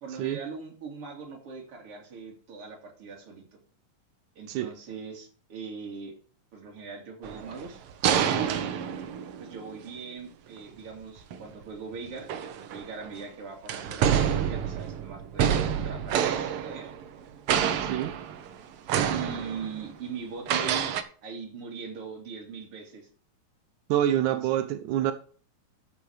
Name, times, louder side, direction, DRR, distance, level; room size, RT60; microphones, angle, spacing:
voice 1, 0.0-3.5 4.4-6.2 6.5-7.8 8.1-8.5 9.4-16.9 19.1-21.0 21.2-23.1 24.3-24.5, right 5 dB, 50° right, 3.6 m, -40 dB
sound 1, 7.2-9.8 11.2-11.4 12.2-13.1 13.7-17.2 17.5-18.5 18.9-19.9 20.5-21.0, right 8 dB, 65° right, 1.5 m, -28 dB
voice 2, 17.8-18.1 23.9-25.1, right 11 dB, 85° right, 2.1 m, -26 dB
13.0 x 5.9 x 5.0 m
omnidirectional pair, 3.4 m